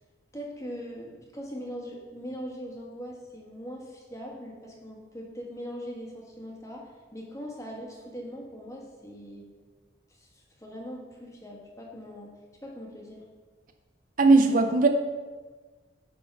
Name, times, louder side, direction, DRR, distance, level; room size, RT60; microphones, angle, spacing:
voice 1, 0.3-9.4 10.1-12.3 12.6-13.2, equal, 15° left, -2 dB, 1.3 m, -41 dB
voice 2, 14.2-14.9, right 3 dB, 45° right, 6 dB, 0.4 m, -18 dB
9.2 x 3.8 x 5.4 m, 1.4 s
head